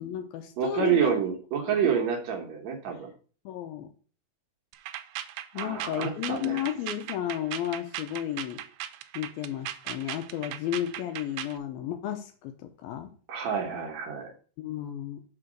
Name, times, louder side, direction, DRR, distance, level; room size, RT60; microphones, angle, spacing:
voice 1, 0.0-1.1 1.6-1.9 3.5-3.9 5.5-8.6 9.1-13.1 14.6-15.2, left 11 dB, 80° left, 7 dB, 2.3 m, -33 dB
voice 2, 0.6-3.1 5.6-6.7 13.3-14.3, right 7 dB, 60° right, 3 dB, 1.9 m, -28 dB
sound 1, 4.7-11.6, right 12 dB, 80° right, 2.2 m, -37 dB
5.8 x 4.9 x 6.1 m, 0.40 s
omnidirectional pair, 4.6 m